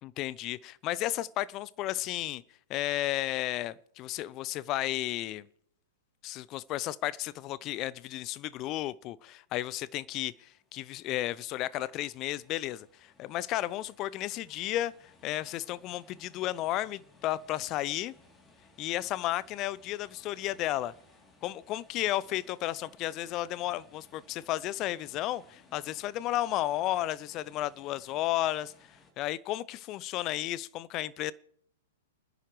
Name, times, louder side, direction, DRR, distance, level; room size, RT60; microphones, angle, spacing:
voice 1, 0.0-2.4 2.7-5.5 6.2-18.1 18.8-20.9 21.4-28.7 29.2-31.3, left 14 dB, 35° left, 0.6 m, -33 dB
sound 1, 10.2-29.1, left 3 dB, 20° left, 3.1 m, -62 dB
29.5 x 10.0 x 3.2 m
figure-of-eight pair, 110°, 0 cm